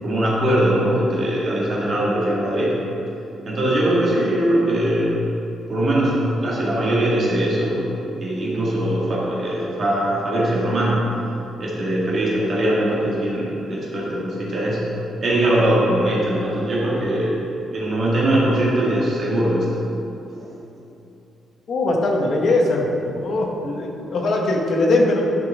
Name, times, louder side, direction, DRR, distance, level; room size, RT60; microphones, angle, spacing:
voice 1, 0.0-2.7 3.5-5.1 5.7-7.8 8.2-11.0 11.6-14.8 15.2-17.4 17.7-19.8, right 1 dB, 35° right, -6 dB, 1.9 m, -21 dB
voice 2, 21.7-22.9 23.2-25.2, left 2 dB, 45° left, 0 dB, 1.1 m, -20 dB
11.5 x 5.2 x 3.6 m, 2.9 s
cardioid pair, 175°, 0 cm